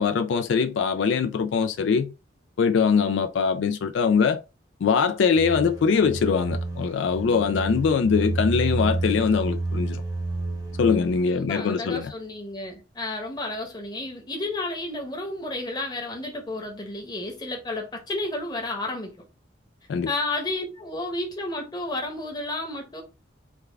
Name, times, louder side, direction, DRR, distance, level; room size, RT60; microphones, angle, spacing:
voice 1, 0.0-2.1 2.6-4.4 4.8-10.0 10.8-12.1 19.9-20.1, left 5 dB, 75° left, 0.3 m, -22 dB
sound 1, 5.4-11.3, right 2 dB, 20° right, 0.6 m, -30 dB
voice 2, 11.3-19.1 20.1-23.0, left 2 dB, 20° left, 0.9 m, -32 dB
3.5 x 2.3 x 3.2 m
head